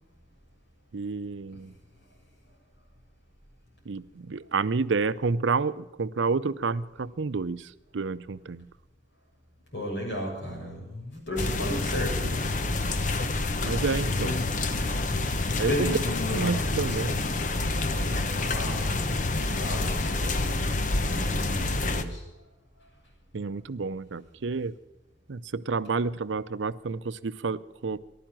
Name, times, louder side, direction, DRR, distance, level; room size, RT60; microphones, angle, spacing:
voice 1, 0.9-1.8 3.8-8.7 13.6-14.4 15.6-15.9 16.3-17.2 23.3-24.7 25.3-28.0, right 4 dB, 90° right, 16 dB, 0.6 m, -29 dB
voice 2, 9.7-12.5 14.0-14.5 15.5-17.3 17.8-20.6 21.1-22.2, left 1 dB, 80° left, -2 dB, 7.0 m, -34 dB
sound 1, 11.4-22.0, left 2 dB, 45° left, 0.9 m, -28 dB
15.0 x 12.0 x 7.6 m, 0.99 s
head